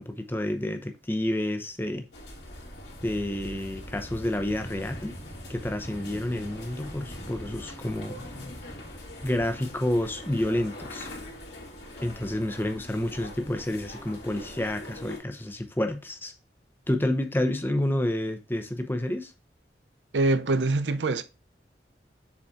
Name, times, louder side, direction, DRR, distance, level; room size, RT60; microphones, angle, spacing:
voice 1, 0.0-2.0 3.0-5.2 5.5-8.2 9.2-11.1 12.0-16.3 16.9-19.3, left 1 dB, 10° left, 0.7 m, -29 dB
sound 1, 2.1-15.2, left 1 dB, 80° left, 2.5 m, -42 dB
voice 2, 20.1-21.2, right 2 dB, 90° right, 0.6 m, -24 dB
7.1 x 4.1 x 3.6 m
head